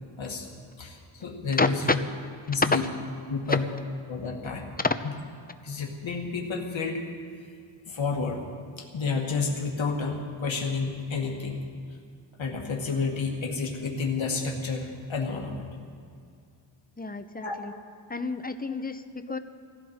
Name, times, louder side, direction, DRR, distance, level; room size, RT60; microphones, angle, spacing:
voice 1, 0.8-2.0 2.5-2.8 3.3-3.6 4.1-4.7 5.6-7.0 7.9-8.4 8.8-11.6 12.4-15.6 17.4-17.6, left 4 dB, 80° left, 0 dB, 2.0 m, -30 dB
voice 2, 1.6-2.0 3.5-3.6 4.2-4.4 17.0-17.7 18.1-19.4, left 3 dB, 20° left, 9 dB, 0.9 m, -29 dB
20.5 x 15.5 x 4.4 m, 2.3 s
cardioid pair, 65°, 46 cm